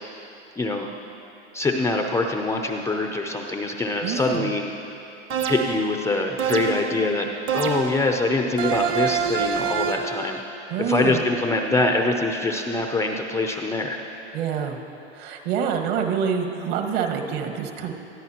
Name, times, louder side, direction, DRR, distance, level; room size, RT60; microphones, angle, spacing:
voice 1, 0.6-0.9 1.5-4.6 5.4-7.3 7.5-10.4 10.8-14.0, left 2 dB, 10° left, 3 dB, 0.5 m, -24 dB
voice 2, 4.0-4.5 10.7-11.2 14.3-14.8 15.1-17.9, right 7 dB, 55° right, 3 dB, 1.6 m, -26 dB
sound 1, 5.3-5.9 6.4-7.0 7.5-8.1 8.6-10.2, right 7 dB, 35° right, 1.0 m, -25 dB
20.0 x 13.0 x 2.9 m, 2.9 s
hypercardioid pair, 115°, 36 cm